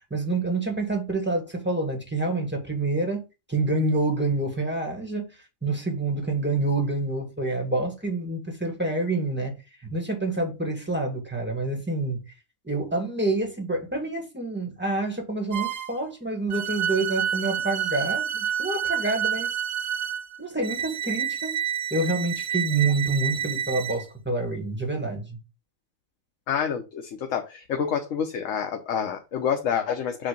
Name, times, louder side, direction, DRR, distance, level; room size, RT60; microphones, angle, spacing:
voice 1, 0.1-3.2 3.5-5.3 5.6-12.2 12.6-19.5 20.4-21.6 21.9-25.4, right 2 dB, 10° right, 1.6 m, -27 dB
sound 1, 15.5-16.0 16.5-24.0, right 9 dB, 60° right, 0.7 m, -29 dB
voice 2, 26.5-30.3, left 7 dB, 75° left, 1.2 m, -28 dB
7.1 x 2.8 x 5.1 m
omnidirectional pair, 1.4 m